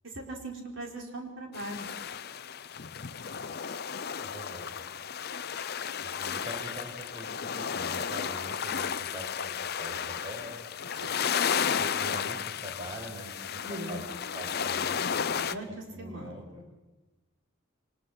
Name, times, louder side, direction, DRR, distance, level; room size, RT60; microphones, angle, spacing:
voice 1, 0.0-1.9 11.0-11.2 13.6-14.6 15.4-16.5, right 1 dB, 65° right, 0 dB, 4.6 m, -40 dB
sound 1, 1.5-15.5, left 7 dB, 50° left, 0.6 m, -33 dB
voice 2, 4.2-4.7 6.0-10.5 11.7-14.1 14.3-15.2 15.7-16.6, equal, 25° right, 0 dB, 6.1 m, -44 dB
24.5 x 20.5 x 5.9 m, 1.1 s
head